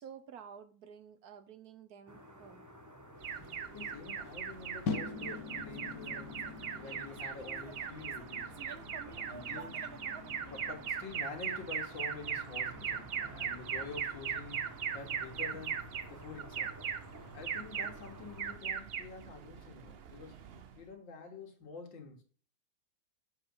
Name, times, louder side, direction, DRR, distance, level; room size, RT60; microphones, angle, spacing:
voice 1, 0.0-2.7, right 7 dB, 60° right, 1.2 m, -51 dB
sound 1, 2.1-18.6, equal, 15° right, 0.8 m, -53 dB
Alarm, 3.2-20.8, right 7 dB, 85° right, 0.5 m, -40 dB
voice 2, 3.7-6.4 6.8-10.1 10.5-15.8 16.1-16.7 17.3-20.3 20.8-22.2, left 4 dB, 80° left, 2.3 m, -48 dB
sound 2, 4.9-11.1, left 5 dB, 60° left, 1.4 m, -44 dB
7.1 x 5.0 x 5.5 m
omnidirectional pair, 2.0 m